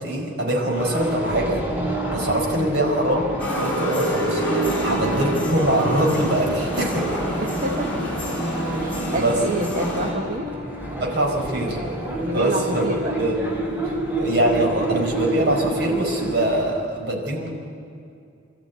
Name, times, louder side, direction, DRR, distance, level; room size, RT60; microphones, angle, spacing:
voice 1, 0.0-1.6 2.1-3.2 3.5-7.2 8.5-8.6 9.1-9.3 11.0-11.8 12.3-12.8 13.2-13.4 14.1-17.5, right 1 dB, 60° right, 0 dB, 5.0 m, -23 dB
sound 1, 0.7-16.7, right 1 dB, 10° right, 4.0 m, -29 dB
sound 2, 3.4-10.1, equal, 10° left, 5.6 m, -27 dB
voice 2, 7.4-8.0 8.7-10.5 12.2-13.2, right 1 dB, 45° right, 2 dB, 1.2 m, -28 dB
26.0 x 13.5 x 9.5 m, 2.4 s
head